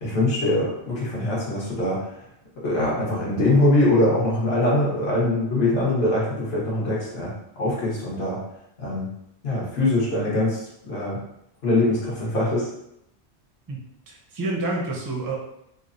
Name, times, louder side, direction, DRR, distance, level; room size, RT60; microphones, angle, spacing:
voice 1, 0.0-2.2 2.5-8.4 8.8-9.1 9.4-11.2 11.6-12.7, left 1 dB, 65° left, -6 dB, 1.1 m, -23 dB
voice 2, 14.1-15.3, right 2 dB, 35° right, -1 dB, 0.3 m, -28 dB
3.1 x 2.0 x 2.5 m, 0.78 s
omnidirectional pair, 1.1 m